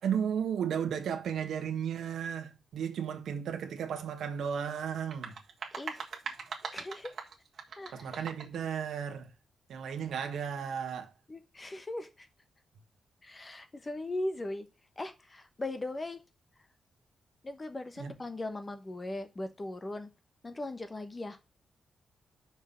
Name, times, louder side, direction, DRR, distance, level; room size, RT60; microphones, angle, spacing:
voice 1, 0.0-5.4 7.9-9.3 9.7-11.1 18.0-18.1, right 8 dB, 85° right, 1.4 m, -34 dB
sound 1, 5.0-8.6, right 5 dB, 45° right, 1.6 m, -41 dB
voice 2, 5.7-6.0 6.7-7.1 7.8-8.2 11.3-12.3 13.2-14.7 15.0-16.2 17.4-20.1 20.4-21.4, left 2 dB, 20° left, 1.0 m, -39 dB
5.9 x 5.5 x 7.0 m
wide cardioid pair, 170°, 0 cm